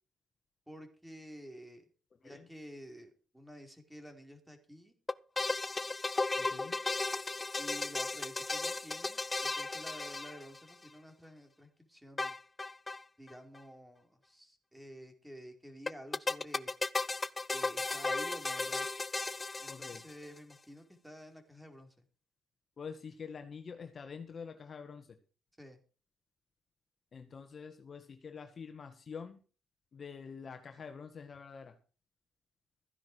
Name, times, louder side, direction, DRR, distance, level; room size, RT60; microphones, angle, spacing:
voice 1, 0.7-1.9 2.2-5.0 7.5-12.4 13.2-16.7 17.5-18.9 19.6-21.9 25.6-25.8, equal, 5° right, 5 dB, 4.5 m, -51 dB
sound 1, 5.1-10.9 12.2-13.0 13.3-13.4 13.6-13.7 15.9-20.4, left 3 dB, 20° left, 0.7 m, -35 dB
voice 2, 6.4-6.8 19.7-20.0 22.8-25.2 27.1-29.4 29.9-31.8, left 6 dB, 45° left, 7 dB, 2.0 m, -46 dB
14.5 x 10.5 x 4.9 m, 0.36 s
cardioid pair, 90°, 0 cm